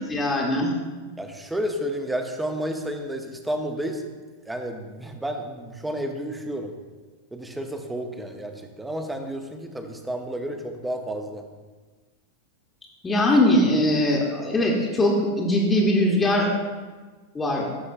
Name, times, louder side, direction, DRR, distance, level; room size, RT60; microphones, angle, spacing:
voice 1, 0.1-0.7 13.0-16.5 17.3-17.7, left 1 dB, 15° left, -2 dB, 1.1 m, -21 dB
voice 2, 1.2-4.0 4.5-6.7 7.3-11.5, equal, 5° right, 5 dB, 0.8 m, -31 dB
12.5 x 5.9 x 2.6 m, 1.4 s
figure-of-eight pair, 90°, 0 cm